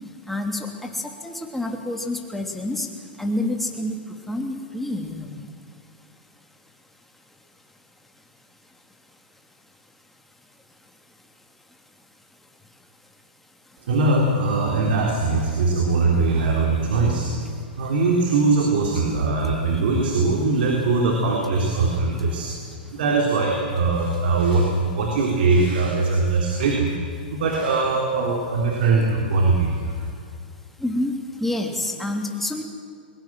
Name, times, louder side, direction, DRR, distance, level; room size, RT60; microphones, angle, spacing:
voice 1, 0.3-0.7 0.9-2.9 3.2-4.0 4.3-5.4 30.8-31.1 31.4-32.6, left 1 dB, 5° left, 2 dB, 2.9 m, -27 dB
voice 2, 13.8-17.3 17.8-22.5 22.9-26.9 27.3-30.1, right 3 dB, 75° right, 1 dB, 3.5 m, -21 dB
21.5 x 21.0 x 7.6 m, 2.3 s
hypercardioid pair, 125°, 5 cm